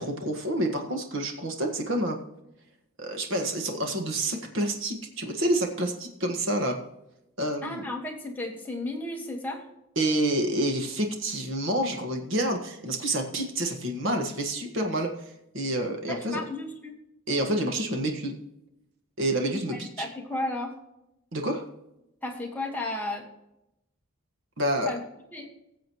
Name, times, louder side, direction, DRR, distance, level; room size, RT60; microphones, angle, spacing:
voice 1, 0.0-2.2 3.0-6.8 7.4-7.9 9.9-15.1 15.5-16.4 17.3-18.3 19.2-20.1 21.3-21.6 24.6-24.9, right 1 dB, 65° right, 4 dB, 1.6 m, -28 dB
voice 2, 7.6-9.6 16.1-17.0 19.7-20.7 22.2-23.3 24.8-25.0 25.3-25.5, left 2 dB, 10° left, 0 dB, 1.5 m, -33 dB
19.0 x 7.5 x 3.1 m, 0.88 s
head